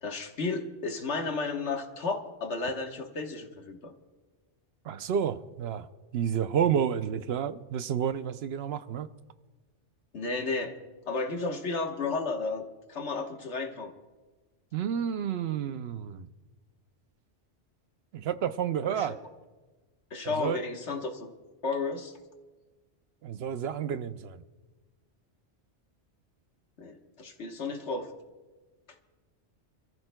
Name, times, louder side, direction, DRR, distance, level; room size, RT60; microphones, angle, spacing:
voice 1, 0.0-3.9 10.1-10.7 11.1-12.6 12.9-13.9 18.8-19.2 20.1-21.3 21.6-22.1 26.8-28.1, left 3 dB, 70° left, 4 dB, 1.5 m, -33 dB
voice 2, 4.8-5.9 6.1-9.1 14.7-16.3 18.1-19.2 20.2-20.6 23.2-24.4, right 8 dB, 65° right, 12 dB, 0.8 m, -30 dB
28.0 x 14.0 x 2.2 m, 1.3 s
omnidirectional pair, 1.2 m